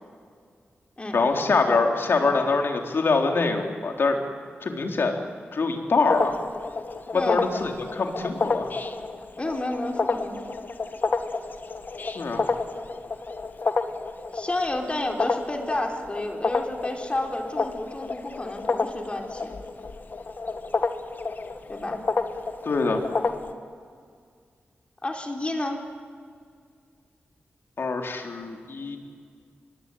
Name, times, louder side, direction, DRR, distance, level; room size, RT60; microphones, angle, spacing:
voice 1, 1.1-4.2 4.6-5.2 5.5-6.3 7.1-8.7 12.2-12.5 22.6-23.0 27.8-29.0, left 4 dB, 65° left, 3 dB, 3.6 m, -24 dB
sound 1, 6.1-23.5, left 3 dB, 50° left, 1.8 m, -30 dB
voice 2, 7.1-7.4 9.4-10.5 14.3-19.6 21.7-22.0 25.0-25.8, left 1 dB, 30° left, 2 dB, 3.8 m, -30 dB
25.0 x 22.0 x 9.3 m, 2.1 s
cardioid pair, 70°, 4 cm